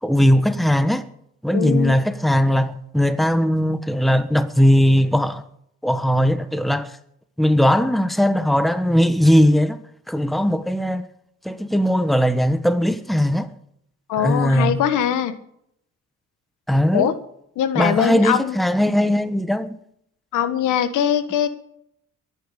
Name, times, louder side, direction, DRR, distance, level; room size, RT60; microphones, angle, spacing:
voice 1, 0.0-1.0 1.4-5.4 5.8-6.9 7.4-9.8 10.1-11.0 11.4-13.5 14.2-14.8 16.7-17.1 17.7-19.8, equal, ahead, 1.3 m, -19 dB
voice 2, 1.5-1.9 14.1-15.4 16.9-17.1 17.6-18.6 20.3-21.5, left 9 dB, 85° left, 1.6 m, -21 dB
22.5 x 9.9 x 5.1 m
cardioid pair, 90°, 30 cm